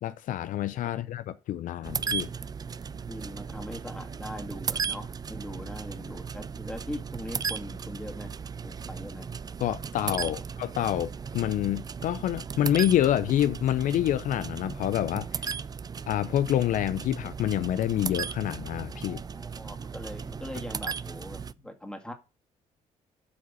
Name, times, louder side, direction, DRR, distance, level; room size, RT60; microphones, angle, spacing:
voice 1, 0.0-2.3 9.6-15.5 16.1-19.2, left 12 dB, 70° left, 0.5 m, -27 dB
sound 1, 1.8-21.5, right 6 dB, 25° right, 0.4 m, -36 dB
voice 2, 3.0-8.3 8.6-9.3 18.9-22.1, left 1 dB, 5° left, 2.1 m, -41 dB
8.3 x 5.1 x 5.6 m
cardioid pair, 80°, 14 cm